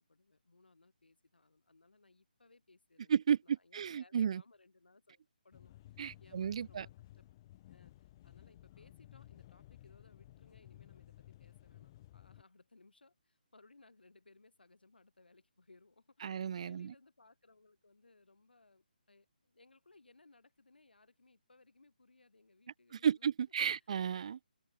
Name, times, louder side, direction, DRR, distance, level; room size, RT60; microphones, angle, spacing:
voice 1, 0.0-7.3 7.7-16.3 16.6-23.3 23.7-23.9, left 3 dB, 85° left, 7.2 m, -65 dB
voice 2, 3.1-4.4 6.0-6.9 16.2-16.9 22.9-24.5, right 8 dB, 40° right, 0.4 m, -33 dB
sound 1, 5.5-12.4, left 15 dB, 25° left, 2.0 m, -57 dB
figure-of-eight pair, 155°, 5 cm